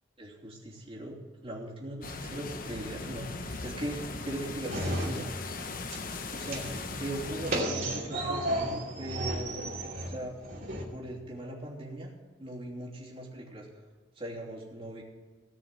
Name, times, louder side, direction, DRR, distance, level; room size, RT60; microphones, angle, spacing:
voice 1, 0.2-1.2 1.4-5.3 6.3-9.7 10.1-10.4 10.9-12.1 12.4-13.7 14.2-15.0, right 1 dB, 30° right, -4 dB, 3.0 m, -39 dB
sound 1, 2.0-7.6, left 3 dB, 50° left, 1.0 m, -39 dB
sound 2, 4.7-5.6 5.9-10.8, right 1 dB, 50° right, 2.7 m, -33 dB
18.0 x 6.3 x 7.6 m, 1.4 s
head